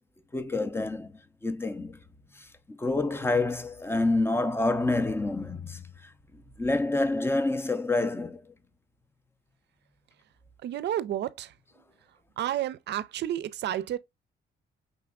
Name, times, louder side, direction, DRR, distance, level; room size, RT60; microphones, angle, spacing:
voice 1, 0.3-2.0 2.3-6.1 6.6-8.5, left 2 dB, 10° left, 0.5 m, -28 dB
voice 2, 10.6-11.5 12.4-14.0, right 12 dB, 60° right, 0.5 m, -31 dB
5.3 x 3.4 x 2.3 m
cardioid pair, 90°, 20 cm